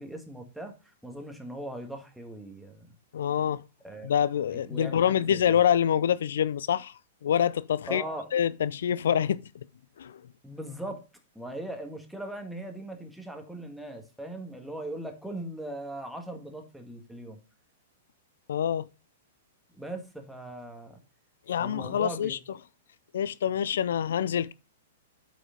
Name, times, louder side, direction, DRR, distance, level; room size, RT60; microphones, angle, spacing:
voice 1, 0.0-2.9 3.8-4.2 4.5-5.6 7.9-8.3 10.4-11.0 11.3-17.4 19.7-21.0 21.6-22.4, right 1 dB, ahead, 1.7 m, -39 dB
voice 2, 3.1-3.6 4.0-8.0 8.3-9.5 10.0-10.2 18.5-18.8 21.5-22.4 23.1-24.5, left 9 dB, 65° left, 0.3 m, -26 dB
8.3 x 5.2 x 3.8 m
figure-of-eight pair, 105°, 0 cm